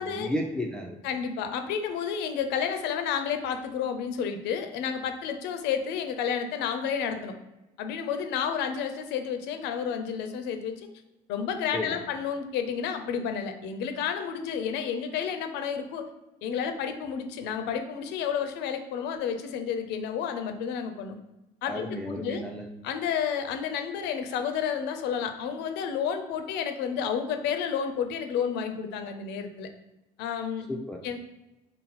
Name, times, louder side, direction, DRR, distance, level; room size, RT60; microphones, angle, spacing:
voice 1, 0.0-1.0 11.7-12.0 21.7-22.7 30.7-31.0, left 1 dB, 5° left, 1 dB, 0.4 m, -33 dB
voice 2, 1.0-7.3 7.8-10.9 11.3-16.1 16.4-21.2 21.6-22.4 22.8-29.7 30.2-30.7 31.0-31.2, left 7 dB, 90° left, 7 dB, 0.5 m, -31 dB
4.0 x 2.0 x 4.1 m, 1.0 s
cardioid pair, 110°, 17 cm